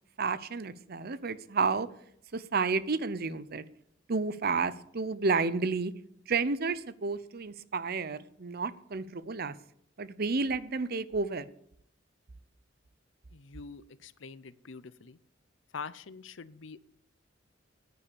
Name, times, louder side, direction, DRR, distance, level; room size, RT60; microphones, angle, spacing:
voice 1, 0.2-1.9 2.3-3.6 4.1-5.9 6.3-9.5 10.0-11.5, right 4 dB, 50° right, 16 dB, 0.7 m, -31 dB
voice 2, 13.3-15.2 15.7-16.8, left 5 dB, 70° left, 17 dB, 0.7 m, -45 dB
10.5 x 9.7 x 6.9 m, 0.70 s
head